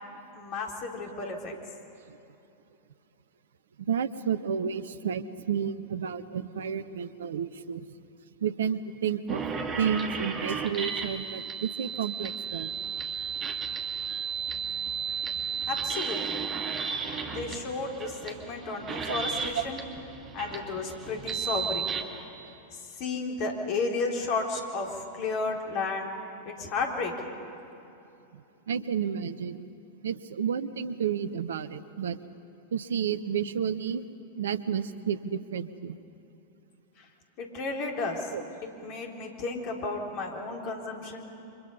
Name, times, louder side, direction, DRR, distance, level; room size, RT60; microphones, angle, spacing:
voice 1, 0.3-1.5 15.6-16.8 17.3-19.8 20.3-21.9 22.7-26.1 26.5-27.3 37.0-37.1 37.4-38.3 38.8-41.3, left 3 dB, 40° left, 2 dB, 3.6 m, -33 dB
voice 2, 3.9-7.9 8.4-9.4 9.8-12.7 19.1-19.2 19.5-19.6 28.3-29.7 30.0-32.2 32.7-34.0 34.3-36.0 38.3-38.4, right 8 dB, 65° right, 14 dB, 0.9 m, -31 dB
sound 1, 9.3-22.0, right 6 dB, 25° right, 2.1 m, -34 dB
29.5 x 24.5 x 5.5 m, 2.9 s
figure-of-eight pair, 90°, 0 cm